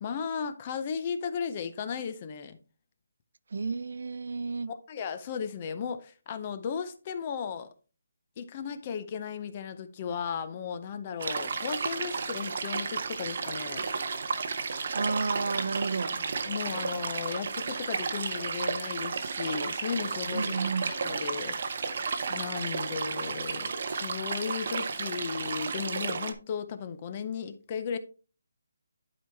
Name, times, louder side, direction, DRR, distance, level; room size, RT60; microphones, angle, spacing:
voice 1, 0.0-2.6 4.9-7.7 8.4-13.9 16.1-21.6 22.3-28.0, left 6 dB, 20° left, 0.5 m, -35 dB
voice 2, 3.5-4.7 14.9-16.1 20.3-20.9, right 4 dB, 50° right, 0.3 m, -31 dB
sound 1, 11.2-26.3, right 5 dB, 30° right, 0.7 m, -33 dB
11.0 x 4.7 x 3.4 m
hypercardioid pair, 180°, 0 cm